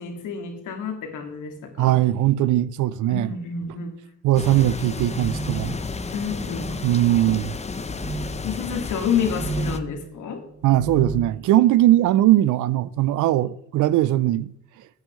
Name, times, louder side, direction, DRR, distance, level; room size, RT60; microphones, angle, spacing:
voice 1, 0.0-1.9 3.1-3.9 6.1-6.7 8.4-10.4, left 6 dB, 85° left, 2.1 m, -29 dB
voice 2, 1.8-3.4 4.2-5.8 6.8-7.6 10.6-14.5, right 14 dB, 80° right, 0.6 m, -20 dB
sound 1, 4.3-9.8, left 4 dB, 20° left, 0.7 m, -32 dB
sound 2, 4.8-5.8 6.5-6.9 7.9-8.3 9.2-9.9 10.5-11.3, right 2 dB, 55° right, 4.6 m, -32 dB
14.0 x 9.3 x 3.1 m
cardioid pair, 90°, 30 cm